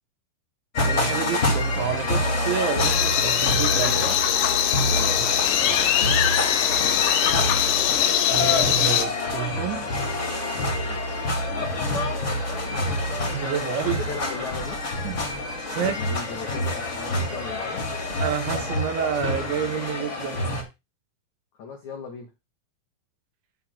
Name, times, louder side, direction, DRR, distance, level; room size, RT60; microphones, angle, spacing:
sound 1, 0.7-20.6, left 1 dB, 30° left, 1.5 m, -27 dB
voice 1, 0.8-3.9 5.2-5.3 5.7-5.8 8.3-9.9 12.6-12.7 13.3-14.0 15.0-15.2 15.8-16.0 18.2-20.7, right 8 dB, 75° right, 3.4 m, -29 dB
sound 2, 2.8-9.1, left 10 dB, 70° left, 2.9 m, -22 dB
voice 2, 3.7-4.2 4.8-6.3 10.9-11.1 11.4-12.1 13.8-14.8 15.7-17.8 21.6-22.3, left 5 dB, 90° left, 1.6 m, -37 dB
11.0 x 3.8 x 6.0 m
omnidirectional pair, 5.8 m